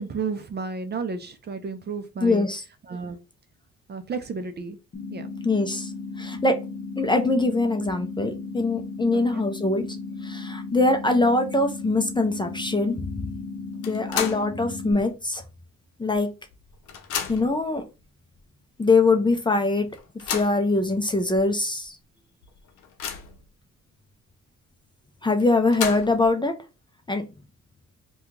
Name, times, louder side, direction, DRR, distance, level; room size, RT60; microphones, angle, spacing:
voice 1, 0.0-2.5 2.8-3.2 3.9-4.8 5.1-5.3 9.1-9.4, right 4 dB, 35° right, 8 dB, 0.5 m, -32 dB
voice 2, 2.2-2.6 5.4-5.9 6.2-6.6 7.0-9.9 10.2-13.3 13.8-15.4 16.0-16.3 17.3-17.8 18.8-19.9 20.3-22.0 25.2-26.5 27.1-27.2, left 3 dB, 15° left, 5 dB, 0.5 m, -23 dB
sound 1, 4.9-14.9, left 4 dB, 40° left, 0.9 m, -35 dB
sound 2, 13.8-14.6 15.0-15.1 16.1-16.2 16.5-17.6 18.4-18.5 18.9-19.0 19.9-20.6 21.3-21.4 21.8-21.9 22.4-23.4 25.4-26.3, left 7 dB, 75° left, 0.7 m, -32 dB
2.8 x 2.3 x 3.7 m, 0.29 s
cardioid pair, 90°, 30 cm